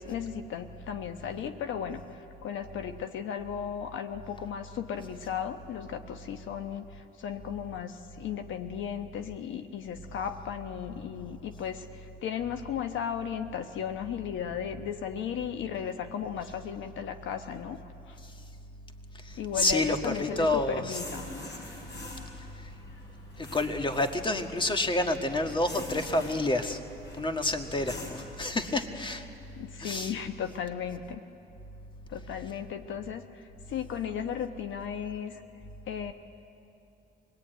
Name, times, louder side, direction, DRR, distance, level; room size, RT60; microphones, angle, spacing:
voice 1, 0.0-17.8 18.1-18.2 19.4-21.3 29.5-31.2 32.1-35.4 35.9-36.1, left 8 dB, 75° left, 7 dB, 1.1 m, -35 dB
voice 2, 19.2-20.8 23.4-26.8 27.2-29.2 29.8-30.1, left 2 dB, 25° left, 6 dB, 1.8 m, -28 dB
sound 1, 19.3-28.4, left 1 dB, 60° left, 6.3 m, -45 dB
25.5 x 19.5 x 9.2 m, 2.7 s
cardioid pair, 90°, 20 cm